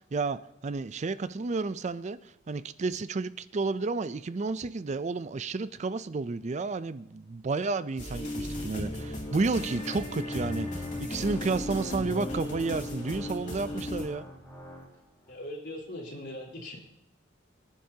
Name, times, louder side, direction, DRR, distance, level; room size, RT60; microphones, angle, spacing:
voice 1, 0.0-14.3, right 3 dB, 35° right, 14 dB, 0.4 m, -31 dB
sound 1, 8.0-14.1, left 1 dB, 40° left, 2.6 m, -35 dB
Organ, 8.7-15.3, equal, 15° left, 3.6 m, -48 dB
voice 2, 15.3-16.8, left 1 dB, 65° left, -1 dB, 3.7 m, -40 dB
24.0 x 10.5 x 2.8 m, 0.87 s
head